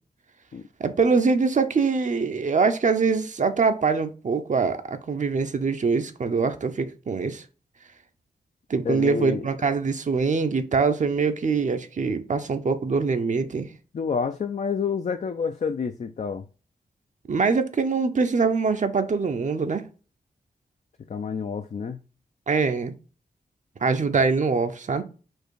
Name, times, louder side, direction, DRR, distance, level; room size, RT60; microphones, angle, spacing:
voice 1, 0.8-7.4 8.7-13.7 17.3-19.8 22.5-22.9 23.8-25.0, right 4 dB, 50° right, 0.6 m, -23 dB
voice 2, 8.8-9.5 13.9-16.4 21.1-22.0, left 5 dB, 50° left, 0.4 m, -28 dB
4.5 x 2.5 x 4.7 m
cardioid pair, 50°, 16 cm